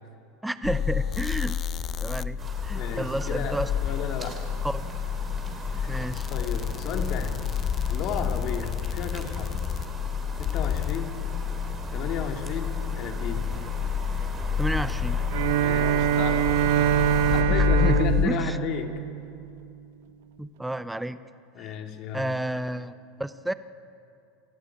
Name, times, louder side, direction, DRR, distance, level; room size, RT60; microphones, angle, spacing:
voice 1, 0.4-1.6 2.0-3.7 4.6-4.9 5.9-6.3 14.6-15.2 17.5-18.6 20.4-21.2 21.6-21.8 22.1-22.9 23.2-23.5, right 1 dB, 5° right, 13 dB, 0.8 m, -31 dB
sound 1, 0.6-18.3, left 8 dB, 30° left, 0.6 m, -29 dB
sound 2, 2.4-17.4, right 3 dB, 25° right, 3.3 m, -40 dB
voice 2, 2.7-3.6 3.8-4.4 5.7-6.0 6.3-7.4 7.9-9.5 10.4-11.2 11.9-13.5 15.6-16.5 17.3-18.9 21.5-22.3, left 7 dB, 50° left, 4 dB, 2.5 m, -33 dB
Bowed string instrument, 15.3-19.7, right 10 dB, 75° right, 0.8 m, -24 dB
27.5 x 14.0 x 8.6 m, 2.6 s
supercardioid pair, 120°, 0 cm